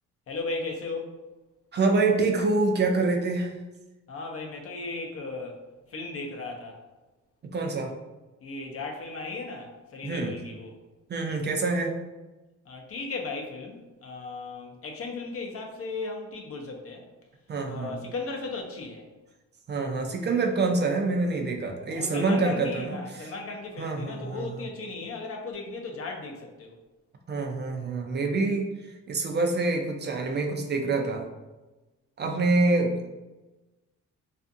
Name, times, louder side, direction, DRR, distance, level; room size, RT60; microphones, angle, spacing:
voice 1, 0.3-1.1 4.1-5.6 5.9-6.8 8.4-10.7 12.7-17.1 17.7-19.1 21.9-26.7, left 3 dB, 50° left, 2 dB, 0.6 m, -36 dB
voice 2, 1.7-3.5 7.5-7.9 10.0-10.3 11.1-12.0 17.5-18.0 19.7-23.3 23.8-24.6 27.3-31.3 32.2-33.1, right 3 dB, 35° right, 3 dB, 0.4 m, -26 dB
2.5 x 2.4 x 2.5 m, 1.1 s
cardioid pair, 90°, 30 cm